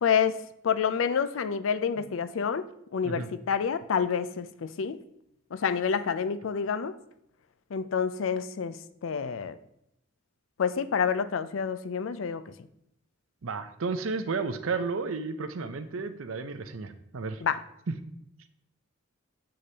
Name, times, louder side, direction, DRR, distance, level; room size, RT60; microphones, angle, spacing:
voice 1, 0.0-5.0 5.5-7.0 7.7-8.8 9.0-9.5 10.6-12.5 17.4-17.6, left 6 dB, 75° left, 13 dB, 0.4 m, -28 dB
voice 2, 13.4-17.4, right 4 dB, 90° right, 10 dB, 0.6 m, -32 dB
7.7 x 6.3 x 2.8 m, 0.78 s
head